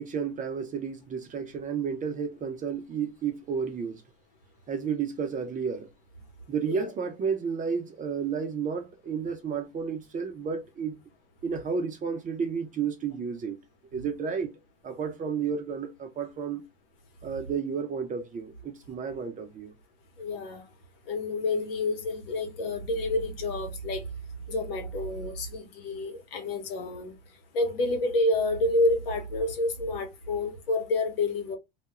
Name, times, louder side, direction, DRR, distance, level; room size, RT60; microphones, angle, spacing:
voice 1, 0.0-4.0 4.7-5.9 6.5-11.0 11.4-13.6 13.9-14.5 14.8-16.6 17.2-19.7, right 6 dB, 25° right, 0.6 m, -32 dB
voice 2, 20.2-20.6 21.1-24.0 24.5-27.1 27.5-31.6, left 2 dB, 80° left, 1.0 m, -28 dB
2.3 x 2.1 x 2.9 m
hypercardioid pair, 95°, 29 cm